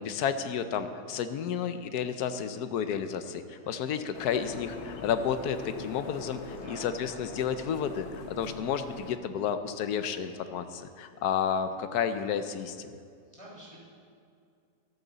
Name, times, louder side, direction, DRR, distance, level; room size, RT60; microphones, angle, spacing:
voice 1, 0.0-12.9, left 7 dB, 70° left, 10 dB, 1.1 m, -31 dB
sound 1, 4.1-9.2, left 4 dB, 45° left, 1.0 m, -42 dB
voice 2, 6.5-6.9 11.7-11.8 13.3-13.8, right 1 dB, 15° right, -6 dB, 3.9 m, -48 dB
14.0 x 12.5 x 4.0 m, 2.3 s
omnidirectional pair, 1.9 m